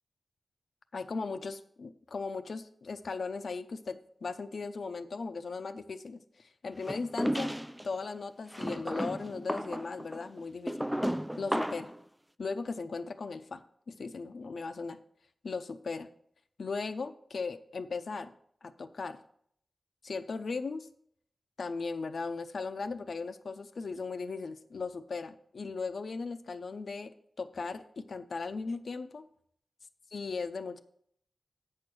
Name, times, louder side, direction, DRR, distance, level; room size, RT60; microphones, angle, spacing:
voice 1, 0.9-7.5 7.8-10.8 11.4-11.9 12.4-15.0 15.4-16.1 16.6-18.3 18.6-19.2 20.0-20.9 21.6-29.2 30.1-30.8, left 4 dB, 80° left, 10 dB, 0.6 m, -37 dB
sound 1, 6.9-7.9 8.5-12.0, equal, 5° right, 0.3 m, -34 dB
8.6 x 6.6 x 6.1 m, 0.66 s
wide cardioid pair, 105°, 0 cm